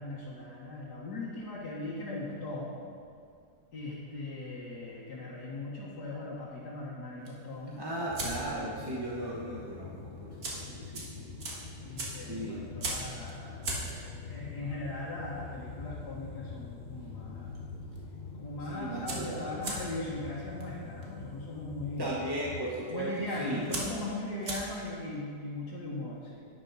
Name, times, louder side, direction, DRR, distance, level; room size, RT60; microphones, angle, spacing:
voice 1, 0.0-2.8 3.7-7.8 9.1-9.3 10.7-10.9 11.8-17.5 18.4-22.1 22.9-26.5, left 2 dB, 80° left, -8 dB, 2.0 m, -39 dB
sound 1, 7.2-8.7 9.0-9.3 9.6-9.7 10.2-17.2 17.4-18.0 18.3-18.4 18.6-25.0, right 2 dB, 60° right, 2.0 m, -40 dB
voice 2, 7.8-11.2 12.2-12.6 18.6-19.6 22.0-23.6, right 1 dB, 20° right, -5 dB, 0.9 m, -36 dB
sound 2, 8.1-22.7, left 4 dB, 55° left, 0.5 m, -45 dB
11.0 x 9.7 x 4.0 m, 2.2 s
omnidirectional pair, 1.7 m